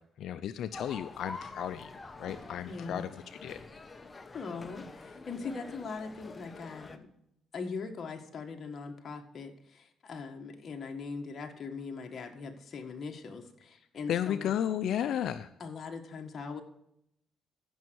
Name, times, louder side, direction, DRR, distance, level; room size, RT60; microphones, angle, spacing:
voice 1, 0.2-1.9 2.2-3.6 14.1-15.5, left 10 dB, 75° left, 12 dB, 0.5 m, -33 dB
sound 1, 0.7-7.0, left 3 dB, 25° left, 1.2 m, -46 dB
voice 2, 2.6-3.1 4.3-7.1 7.5-14.5 15.6-16.6, left 4 dB, 45° left, 3 dB, 1.6 m, -41 dB
15.5 x 6.4 x 4.6 m, 0.76 s
cardioid pair, 90°, 0 cm